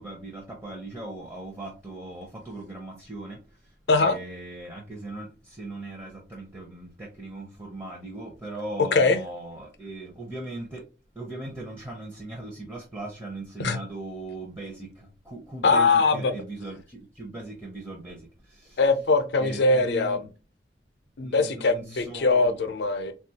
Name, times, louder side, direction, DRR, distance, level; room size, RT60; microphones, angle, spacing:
voice 1, 0.0-10.8 11.1-18.8 19.4-20.2 21.2-22.6, right 2 dB, 15° right, 0.6 m, -39 dB
voice 2, 15.6-16.4 18.8-20.3 21.2-23.1, left 3 dB, 85° left, 0.5 m, -22 dB
3.5 x 2.3 x 2.7 m
head